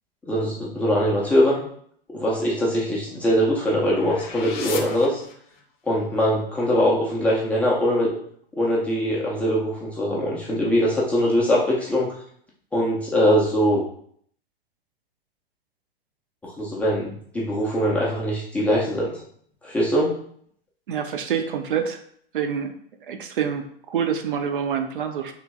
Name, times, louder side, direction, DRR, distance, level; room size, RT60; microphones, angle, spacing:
voice 1, 0.3-1.7 2.1-5.2 5.9-8.2 8.5-12.1 12.7-13.8 16.6-19.2 19.6-20.2, equal, 5° left, -6 dB, 0.3 m, -22 dB
sound 1, 2.4-5.9, left 5 dB, 50° left, 0.7 m, -39 dB
voice 2, 20.9-22.0 22.3-22.7 23.1-25.3, right 7 dB, 60° right, 6 dB, 0.5 m, -26 dB
3.1 x 2.5 x 3.5 m, 0.62 s
figure-of-eight pair, 100°, 30 cm